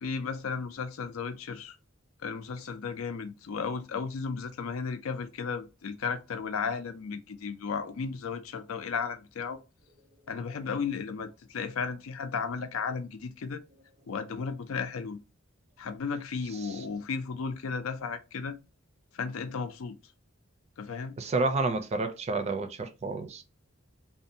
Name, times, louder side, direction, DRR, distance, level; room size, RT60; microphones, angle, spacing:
voice 1, 0.0-1.8 2.2-9.6 10.3-13.6 14.1-15.2 15.8-18.6 19.1-20.0 20.8-21.2, left 5 dB, 90° left, 0.5 m, -34 dB
voice 2, 21.2-23.4, right 3 dB, 30° right, 0.4 m, -30 dB
2.5 x 2.1 x 2.6 m
head